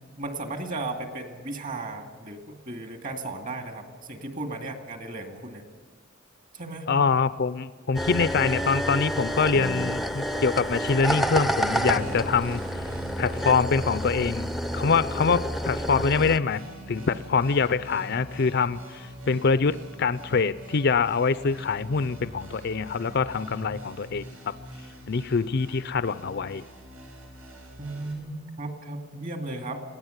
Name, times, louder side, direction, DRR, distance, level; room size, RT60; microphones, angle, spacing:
voice 1, 0.2-5.6 6.5-6.9 9.5-9.9 27.8-29.8, right 2 dB, 40° right, 5 dB, 2.3 m, -35 dB
voice 2, 6.9-12.6 13.2-16.6 16.9-24.2 25.1-26.6, left 5 dB, 55° left, 14 dB, 0.5 m, -24 dB
sound 1, 7.9-16.4, equal, ahead, 0.6 m, -29 dB
sound 2, 11.8-28.1, equal, 85° right, 6.0 m, -43 dB
22.0 x 16.5 x 8.1 m, 1.5 s
head